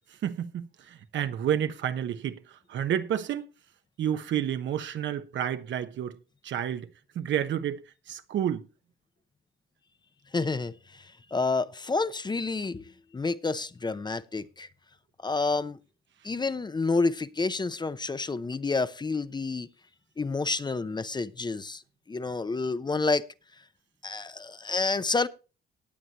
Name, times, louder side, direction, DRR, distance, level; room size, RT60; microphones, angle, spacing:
voice 1, 0.2-3.5 4.0-6.2 6.4-6.9 7.1-7.8 8.1-8.6, right 10 dB, 70° right, 1.1 m, -30 dB
voice 2, 10.3-12.8 13.1-14.7 15.2-15.8 16.2-19.7 20.2-21.8 22.1-23.3 24.0-25.3, left 3 dB, 20° left, 0.7 m, -29 dB
19.0 x 8.2 x 3.0 m
cardioid pair, 100°, 20 cm